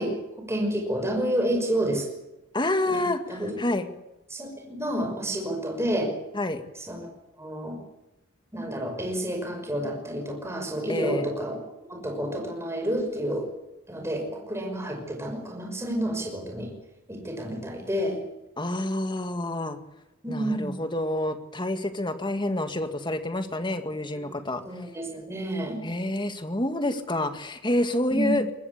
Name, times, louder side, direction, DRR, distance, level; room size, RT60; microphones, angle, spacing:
voice 1, 0.0-2.1 2.8-3.5 4.3-6.1 6.8-7.1 7.4-7.8 8.5-11.6 11.9-13.5 13.9-16.7 17.1-18.2 20.2-20.7 24.1-24.2 24.7-25.8 28.1-28.4, right 1 dB, 15° right, 2 dB, 5.7 m, -29 dB
voice 2, 2.5-3.9 6.3-6.6 10.9-11.3 18.6-19.8 20.3-24.6 25.8-28.5, left 1 dB, 25° left, 8 dB, 2.0 m, -28 dB
23.0 x 19.5 x 8.4 m, 0.92 s
head